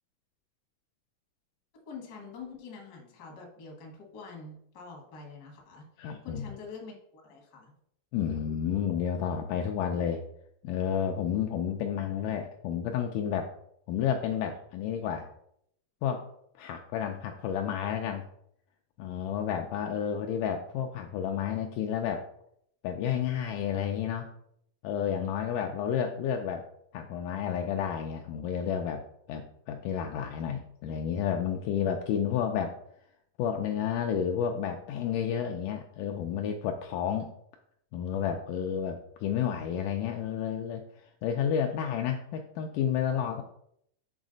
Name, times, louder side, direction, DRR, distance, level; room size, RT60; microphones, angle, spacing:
voice 1, 1.7-5.8 6.2-7.7, left 4 dB, 55° left, 0 dB, 1.1 m, -45 dB
voice 2, 6.0-6.4 8.1-10.2 10.6-13.5 13.9-15.3 16.0-16.3 16.6-18.3 19.0-22.3 22.8-24.3 24.8-26.7 26.9-29.0 29.3-32.8 33.4-37.3 37.9-43.4, left 8 dB, 80° left, 3 dB, 1.9 m, -31 dB
7.1 x 4.1 x 3.8 m, 0.73 s
omnidirectional pair, 4.1 m